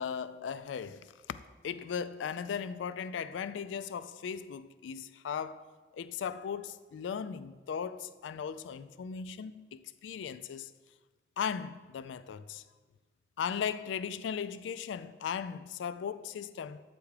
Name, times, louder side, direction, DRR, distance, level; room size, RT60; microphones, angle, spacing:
voice 1, 0.0-1.4 1.6-5.7 5.9-10.7 11.4-12.6 13.4-16.8, left 7 dB, 85° left, 0.3 m, -37 dB
8.2 x 3.5 x 4.8 m
head